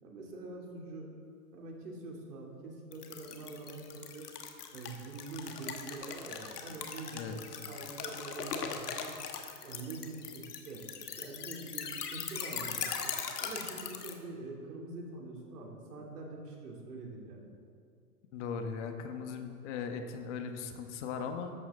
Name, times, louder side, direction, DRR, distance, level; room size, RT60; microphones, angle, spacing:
voice 1, 0.0-1.1 1.5-4.3 4.7-9.1 9.6-10.8 11.2-13.1 13.4-17.4, right 3 dB, 75° right, -1 dB, 3.3 m, -45 dB
sound 1, 2.9-14.2, left 6 dB, 75° left, 1.6 m, -40 dB
voice 2, 18.3-21.5, left 6 dB, 45° left, 6 dB, 1.4 m, -38 dB
14.0 x 12.5 x 3.9 m, 2.3 s
hypercardioid pair, 125°, 47 cm